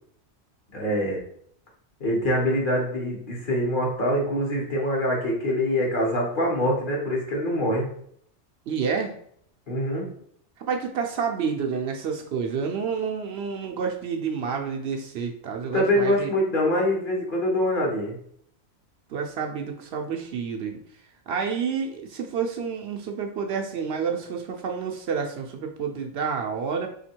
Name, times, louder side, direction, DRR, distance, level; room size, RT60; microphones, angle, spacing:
voice 1, 0.7-1.2 2.0-7.9 9.7-10.1 15.7-18.1, left 1 dB, 45° left, -3 dB, 1.3 m, -24 dB
voice 2, 8.7-9.2 10.6-16.3 19.1-20.8 21.3-26.9, right 6 dB, 65° right, 2 dB, 0.7 m, -29 dB
3.4 x 2.8 x 4.4 m, 0.66 s
omnidirectional pair, 1.2 m